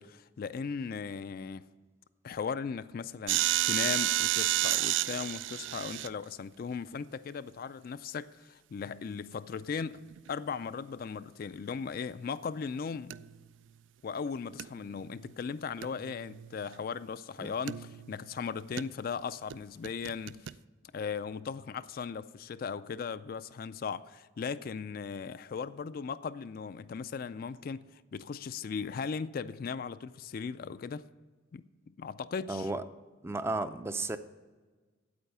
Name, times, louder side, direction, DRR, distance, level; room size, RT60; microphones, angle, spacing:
voice 1, 0.0-1.6 2.2-10.0 10.3-13.1 14.0-20.5 20.9-31.1 31.5-32.7, left 6 dB, 50° left, 0.3 m, -38 dB
sound 1, 3.3-6.1 10.1-10.3 13.1-13.3 14.6-14.7 15.1-15.2 15.8-16.8 17.7-18.3 18.8-18.9 19.5-19.6 19.8-20.5, right 14 dB, 80° right, 0.3 m, -31 dB
voice 2, 32.5-32.8 33.2-34.2, right 2 dB, 15° right, 0.4 m, -33 dB
8.8 x 8.4 x 6.7 m
head